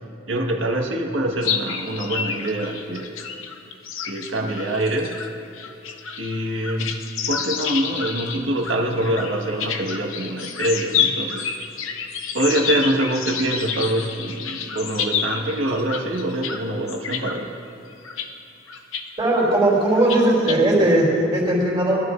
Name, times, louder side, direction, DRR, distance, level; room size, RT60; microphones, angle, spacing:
voice 1, 0.3-3.2 4.0-5.1 6.2-7.0 7.3-11.5 12.3-17.5 19.6-21.3, right 1 dB, 70° right, 0 dB, 1.6 m, -25 dB
sound 1, 1.4-16.6 16.9-17.4 17.9-18.3 18.7-19.0 19.3-19.4 19.9-20.5, left 7 dB, 80° left, 0.8 m, -29 dB
voice 2, 19.2-21.0 21.3-22.0, right 1 dB, 20° right, -6 dB, 3.4 m, -18 dB
21.5 x 13.0 x 2.6 m, 2.8 s
head